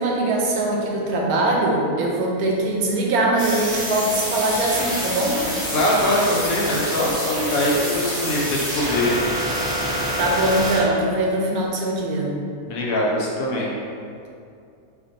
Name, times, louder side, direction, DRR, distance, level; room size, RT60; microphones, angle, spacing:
voice 1, 0.0-5.4 10.2-12.4, right 2 dB, 85° right, -1 dB, 1.1 m, -22 dB
sound 1, 3.4-10.8, equal, 5° right, 0.7 m, -27 dB
voice 2, 5.7-9.3 12.6-13.7, left 1 dB, 70° left, -4 dB, 1.1 m, -22 dB
4.3 x 2.5 x 2.7 m, 2.5 s
omnidirectional pair, 1.5 m